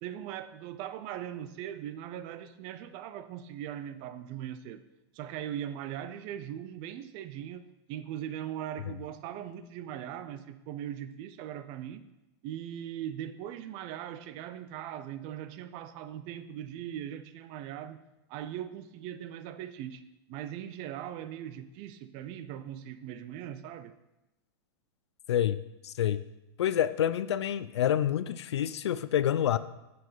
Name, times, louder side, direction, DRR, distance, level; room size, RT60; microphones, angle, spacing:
voice 1, 0.0-4.8 5.1-12.0 12.4-18.0 18.3-20.0 20.3-23.9, right 10 dB, 40° right, 0.6 m, -40 dB
voice 2, 25.3-26.2 26.6-29.6, left 10 dB, 90° left, 0.5 m, -28 dB
7.0 x 6.2 x 5.7 m
hypercardioid pair, 135°, 14 cm